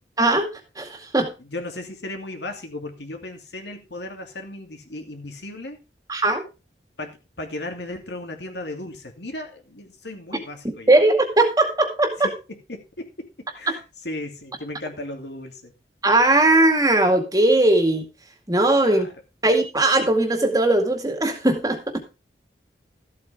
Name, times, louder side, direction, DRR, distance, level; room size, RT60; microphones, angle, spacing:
voice 1, 0.2-0.5 0.8-1.3 6.1-6.4 10.9-12.3 13.7-13.8 16.0-18.0 18.5-19.1 19.4-22.0, right 2 dB, 20° right, 5 dB, 2.2 m, -19 dB
voice 2, 1.4-5.8 7.0-10.9 12.2-15.7 18.8-19.1, left 1 dB, 75° left, 4 dB, 2.8 m, -36 dB
14.0 x 8.5 x 3.6 m, 0.30 s
head